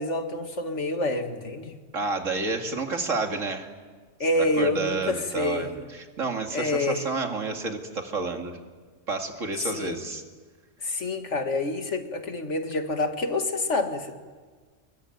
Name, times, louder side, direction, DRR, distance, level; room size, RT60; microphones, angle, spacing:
voice 1, 0.0-1.7 4.2-5.8 6.5-7.1 9.7-10.0 10.8-14.2, left 2 dB, 70° left, 6 dB, 2.3 m, -27 dB
voice 2, 1.9-3.7 4.4-8.6 9.1-10.2, right 3 dB, 90° right, 4 dB, 2.7 m, -30 dB
27.5 x 22.0 x 9.5 m, 1.5 s
omnidirectional pair, 1.3 m